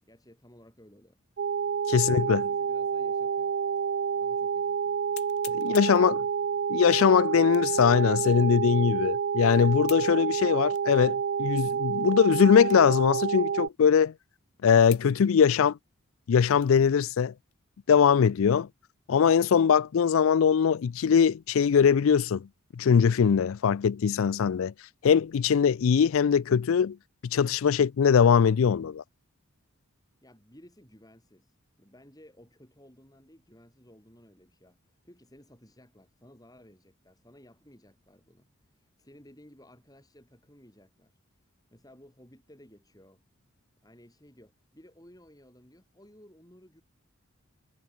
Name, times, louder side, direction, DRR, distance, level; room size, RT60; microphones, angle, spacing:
voice 1, 0.0-1.4 2.0-3.5 4.1-5.0 5.4-6.4 30.2-41.2 41.7-43.2 43.8-46.8, equal, 15° left, 6.0 m, -56 dB
sound 1, 1.4-13.7, right 6 dB, 50° right, 0.4 m, -29 dB
voice 2, 1.9-2.4 5.6-6.2 6.7-14.1 14.6-15.8 16.3-17.3 17.9-18.7 19.1-22.5 22.8-24.7 25.0-27.0 27.2-29.0, left 7 dB, 70° left, 0.4 m, -22 dB
sound 2, 3.8-3.9 4.4-4.5 5.1-6.1 7.5-7.8 8.4-8.5 9.9-10.1 10.7-10.9 11.5-11.6 12.6-13.0 13.3-13.4 14.0-14.1 14.9-15.1 15.4-16.9 17.4-17.6 18.1-18.5, left 17 dB, 90° left, 2.5 m, -46 dB
head